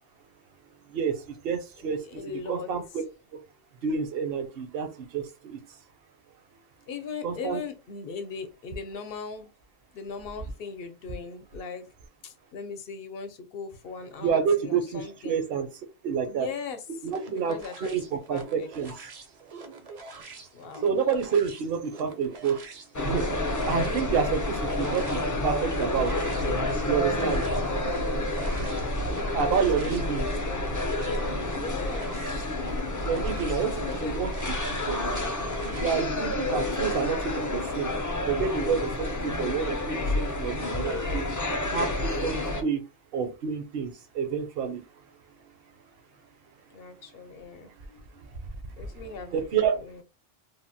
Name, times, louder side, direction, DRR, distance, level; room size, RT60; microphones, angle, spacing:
voice 1, 0.9-2.2 2.5-2.8 3.8-5.6 7.2-7.6 14.2-15.7 16.0-16.5 16.9-17.6 17.9-18.9 20.8-22.6 23.0-23.3 23.7-26.1 26.8-27.4 29.2-30.3 33.0-33.7 34.0-34.3 34.7-35.0 35.7-37.9 38.3-41.3 41.7-42.8 43.1-44.8 48.8-48.9 49.3-49.8, right 6 dB, 70° right, 0.8 m, -28 dB
voice 2, 2.0-2.7 6.9-9.5 9.9-11.9 12.2-15.4 16.3-16.9 17.3-18.7 20.2-20.3 20.5-20.8 27.2-28.1 29.5-30.7 31.5-32.4 33.8-34.2 46.7-48.0 48.7-50.0, left 5 dB, 70° left, 0.8 m, -39 dB
sound 1, 17.1-36.1, right 4 dB, 50° right, 0.5 m, -46 dB
sound 2, 22.9-42.6, left 1 dB, 30° left, 0.3 m, -29 dB
3.2 x 2.0 x 2.6 m
omnidirectional pair, 1.0 m